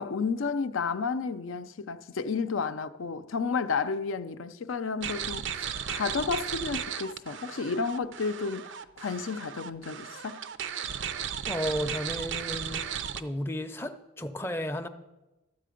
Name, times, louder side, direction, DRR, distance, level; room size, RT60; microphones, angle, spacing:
voice 1, 0.0-8.7 9.0-10.4, left 5 dB, 85° left, 0.5 m, -31 dB
sound 1, 5.0-13.2, right 8 dB, 70° right, 0.5 m, -35 dB
voice 2, 11.5-12.8 13.2-14.9, equal, 10° left, 0.5 m, -33 dB
13.0 x 8.4 x 5.1 m
head